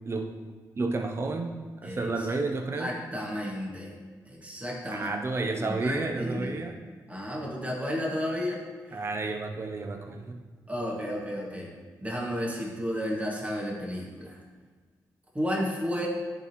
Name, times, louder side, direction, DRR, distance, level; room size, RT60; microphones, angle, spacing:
voice 1, 0.8-1.6 1.8-3.0 4.9-6.8 8.9-10.4, right 3 dB, 35° right, 3 dB, 0.7 m, -31 dB
voice 2, 1.8-2.3 2.7-3.9 4.3-5.1 5.5-6.6 7.1-9.1 10.7-11.7 12.0-14.4 15.3-16.1, equal, 20° right, -3 dB, 1.9 m, -32 dB
10.5 x 3.9 x 3.0 m, 1.4 s
cardioid pair, 60°, 7 cm